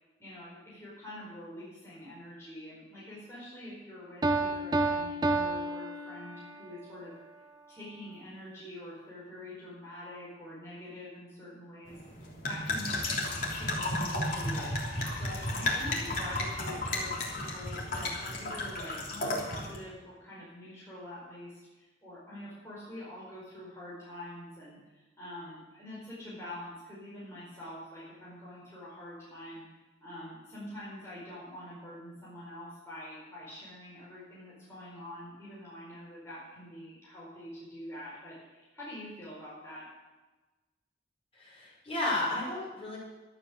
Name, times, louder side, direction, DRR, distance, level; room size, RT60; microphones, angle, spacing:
voice 1, 0.2-7.2 7.7-12.0 12.5-29.6 30.0-39.9, left 1 dB, 15° left, -8 dB, 4.8 m, -45 dB
Piano, 4.2-6.7, right 2 dB, 20° right, 0.7 m, -30 dB
sound 1, 11.9-19.8, left 1 dB, 50° left, 3.4 m, -33 dB
voice 2, 41.3-43.0, left 2 dB, 35° left, -5 dB, 6.1 m, -33 dB
13.0 x 11.5 x 6.7 m, 1.2 s
head